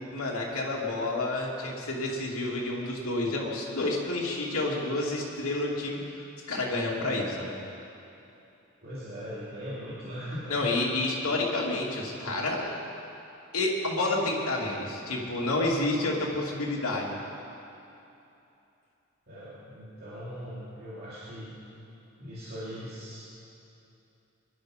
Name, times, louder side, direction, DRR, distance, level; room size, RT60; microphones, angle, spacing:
voice 1, 0.1-6.0 6.5-7.6 10.5-12.7 13.5-17.2, left 2 dB, 85° left, -3 dB, 2.7 m, -29 dB
voice 2, 8.8-10.5 19.3-21.5 22.2-23.3, equal, 45° right, -10 dB, 2.9 m, -40 dB
21.5 x 12.0 x 5.1 m, 2.8 s
head